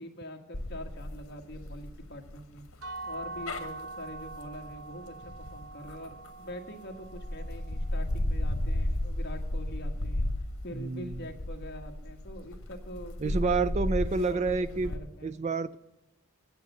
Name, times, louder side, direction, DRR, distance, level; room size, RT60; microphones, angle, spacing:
voice 1, 0.0-2.6 3.1-5.1 5.5-10.3 10.6-13.7 14.1-14.5 14.8-15.3, equal, 50° left, 3 dB, 1.4 m, -43 dB
sound 1, 0.5-6.5 7.0-15.0, left 1 dB, 80° left, 1.3 m, -34 dB
sound 2, 2.8-8.6, right 3 dB, 85° right, 1.3 m, -44 dB
voice 2, 10.7-11.2 13.2-14.9 15.2-15.8, right 4 dB, 30° right, 15 dB, 0.3 m, -29 dB
9.1 x 8.1 x 8.3 m, 1.0 s
head